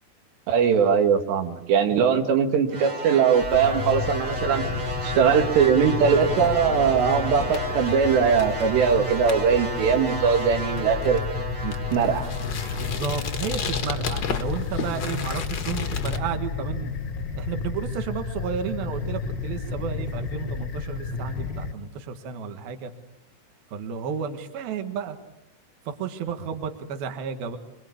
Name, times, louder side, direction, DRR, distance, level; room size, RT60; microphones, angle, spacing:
voice 1, 0.5-4.6 5.0-11.2 11.6-12.3, right 7 dB, 90° right, 5 dB, 4.0 m, -21 dB
sound 1, 2.7-15.0, right 2 dB, 40° right, 1.1 m, -33 dB
sound 2, 3.4-21.7, left 5 dB, 50° left, 1.1 m, -32 dB
sound 3, 6.2-16.2, left 6 dB, 85° left, 0.9 m, -34 dB
voice 2, 12.8-16.9 17.4-22.9 23.7-25.2 25.9-27.6, right 7 dB, 65° right, 7 dB, 3.4 m, -32 dB
25.0 x 24.0 x 8.5 m, 0.86 s
omnidirectional pair, 4.8 m